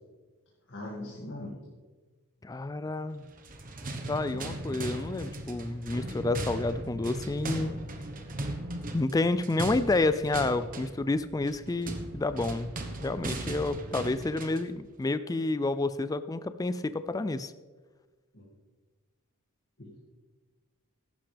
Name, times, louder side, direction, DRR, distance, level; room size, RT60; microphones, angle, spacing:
voice 1, 0.7-1.5 18.3-18.5 19.8-20.0, left 1 dB, 55° left, -5 dB, 2.3 m, -40 dB
voice 2, 2.4-3.3 4.1-7.7 8.9-12.7 13.0-17.5, left 2 dB, 15° left, 12 dB, 0.3 m, -29 dB
sound 1, 3.3-14.7, right 1 dB, 40° right, 1.2 m, -38 dB
15.0 x 11.5 x 3.4 m, 1.3 s
head